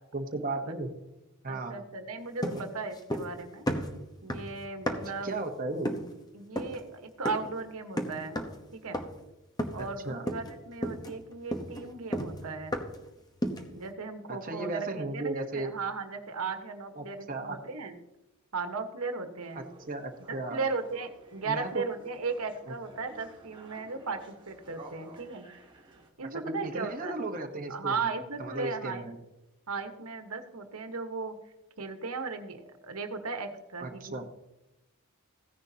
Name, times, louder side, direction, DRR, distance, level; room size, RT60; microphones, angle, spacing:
voice 1, 0.1-0.9 1.4-1.8 5.2-5.9 10.0-10.3 14.4-15.7 17.0-17.6 19.5-20.6 21.4-21.7 26.3-27.9 28.4-29.2 33.8-34.2, right 2 dB, 40° right, 3 dB, 1.1 m, -35 dB
voice 2, 1.5-3.6 4.2-5.4 6.3-8.4 8.7-9.0 9.7-12.8 13.7-18.0 18.5-19.7 20.3-25.4 26.2-27.1 27.7-29.1 29.7-31.4 31.8-34.3, right 4 dB, 80° right, 7 dB, 1.3 m, -36 dB
sound 1, 2.4-3.4 3.7-5.2 5.8-6.1 6.6-6.8 7.2-7.6 8.0-8.6 8.9-9.3 9.6-10.0 10.3-10.5 10.8-13.1 13.4-13.8, equal, 15° left, 1.0 m, -34 dB
sound 2, 19.4-26.1, right 1 dB, 20° right, 1.9 m, -53 dB
16.0 x 10.0 x 2.8 m, 0.97 s
head